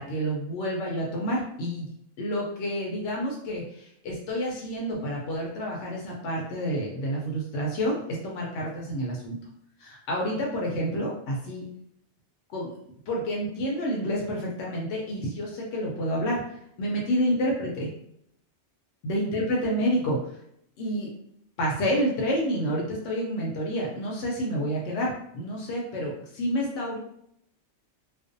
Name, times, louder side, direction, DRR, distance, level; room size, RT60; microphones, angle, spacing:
voice 1, 0.0-1.9 2.2-9.3 9.8-11.7 12.5-12.7 13.1-16.4 16.8-17.9 19.0-20.4 20.8-21.1 21.6-27.0, equal, 85° left, -2 dB, 0.9 m, -29 dB
2.5 x 2.0 x 2.5 m, 0.71 s
omnidirectional pair, 1.2 m